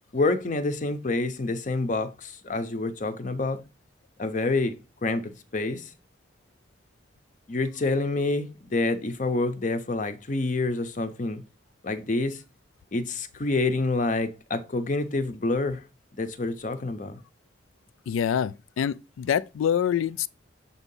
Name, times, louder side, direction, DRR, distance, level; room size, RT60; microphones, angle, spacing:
voice 1, 0.1-3.6 4.2-4.8 5.0-5.9 7.5-11.4 11.8-12.4 12.9-15.8 16.2-17.2, left 2 dB, 40° left, 0.6 m, -27 dB
voice 2, 18.1-20.3, left 8 dB, 90° left, 0.3 m, -26 dB
7.0 x 2.7 x 5.3 m
head